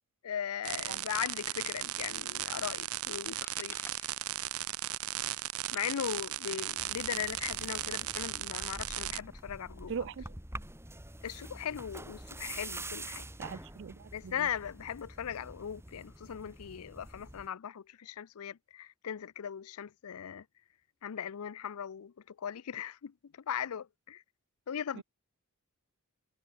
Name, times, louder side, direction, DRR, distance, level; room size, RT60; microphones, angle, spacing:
voice 1, 0.2-3.8 5.7-9.9 11.2-13.2 14.1-20.4 21.0-24.2 24.7-25.0, left 8 dB, 85° left, 0.5 m, -39 dB
sound 1, 0.6-9.2, right 13 dB, 85° right, 1.0 m, -36 dB
sound 2, 3.1-5.1 5.4-7.6, left 2 dB, 10° left, 4.2 m, -54 dB
sound 3, 6.8-17.5, right 2 dB, 10° right, 3.8 m, -47 dB
voice 2, 9.9-10.3 13.4-14.5 24.9-25.0, right 6 dB, 55° right, 0.4 m, -40 dB
head